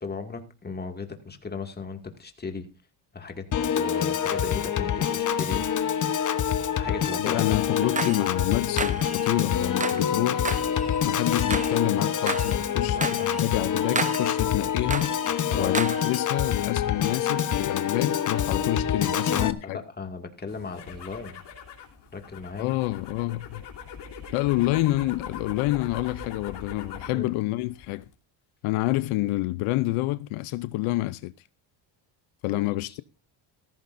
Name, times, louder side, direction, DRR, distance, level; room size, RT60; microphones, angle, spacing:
voice 1, 0.0-2.7 3.1-3.5 3.7-5.7 6.7-8.3 12.9-13.4 15.5-15.7 19.1-21.4 22.1-22.7 27.1-27.3 32.5-33.0, left 4 dB, 20° left, 2.3 m, -37 dB
Piano / Organ, 3.5-19.5, left 8 dB, 40° left, 1.1 m, -26 dB
voice 2, 7.2-10.5 11.0-15.1 15.5-19.8 22.6-23.6 24.3-28.0 28.6-31.3 32.4-33.0, left 18 dB, 80° left, 0.7 m, -28 dB
sound 1, 7.7-8.2 8.8-9.3 9.6-10.1 10.4-11.8 12.1-12.6 13.0-13.4 13.8-14.4 14.8-15.3 15.7-16.2, right 4 dB, 15° right, 0.9 m, -32 dB
sound 2, 20.5-27.2 27.6-28.1, left 6 dB, 55° left, 3.3 m, -42 dB
15.5 x 14.0 x 2.6 m
cardioid pair, 110°, 49 cm